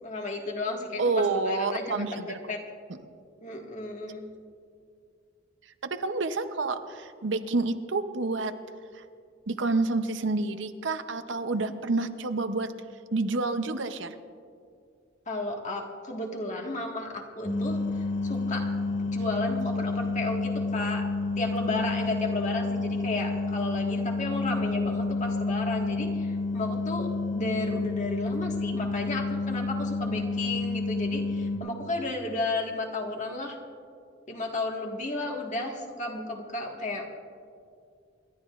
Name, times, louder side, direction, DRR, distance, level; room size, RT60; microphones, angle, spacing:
voice 1, 0.0-2.6 3.4-4.3 15.3-21.1 21.3-33.6 34.3-37.2, left 2 dB, 40° left, 1 dB, 1.6 m, -33 dB
voice 2, 1.0-2.4 5.8-8.5 8.9-9.0 9.5-12.7 13.1-14.2, right 3 dB, 70° right, 9 dB, 0.7 m, -28 dB
sound 1, 17.4-31.6, left 3 dB, 60° left, 2.1 m, -29 dB
27.5 x 12.0 x 2.5 m, 2.3 s
head